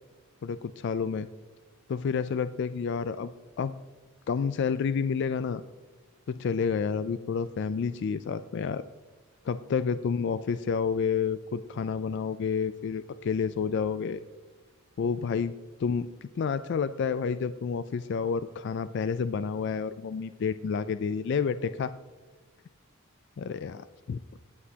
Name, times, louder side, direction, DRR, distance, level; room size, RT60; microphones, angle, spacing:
voice 1, 0.4-1.3 1.9-3.3 3.6-3.7 4.3-5.6 6.3-8.8 9.4-14.2 15.0-15.5 15.8-21.9 23.4-24.2, left 6 dB, 55° left, 13 dB, 0.3 m, -29 dB
16.5 x 9.6 x 2.8 m, 1.3 s
head